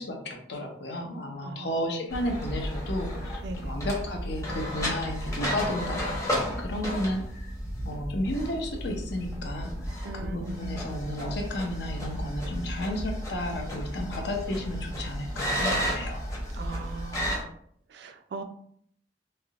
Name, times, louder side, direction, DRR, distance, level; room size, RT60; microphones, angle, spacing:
voice 1, 0.0-7.5 7.8-9.7 10.1-16.4, left 1 dB, 65° left, 2 dB, 0.6 m, -33 dB
voice 2, 1.4-1.9 3.4-3.8 10.0-11.0 16.5-17.5 17.9-18.4, right 2 dB, 65° right, 6 dB, 0.4 m, -40 dB
sound 1, 2.1-17.4, equal, 15° left, 0.8 m, -33 dB
3.3 x 2.7 x 2.4 m, 0.64 s
head